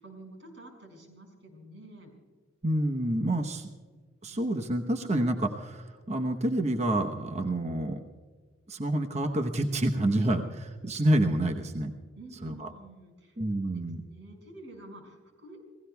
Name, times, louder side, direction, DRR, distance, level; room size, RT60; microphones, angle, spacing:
voice 1, 0.0-2.1 4.3-4.5 12.2-13.4 13.6-15.7, right 2 dB, 60° right, 2 dB, 5.6 m, -49 dB
voice 2, 2.6-3.7 4.2-8.0 8.7-11.9 12.4-12.7 13.4-14.0, right 1 dB, 35° right, 5 dB, 0.9 m, -28 dB
29.5 x 17.5 x 2.3 m, 1.5 s
head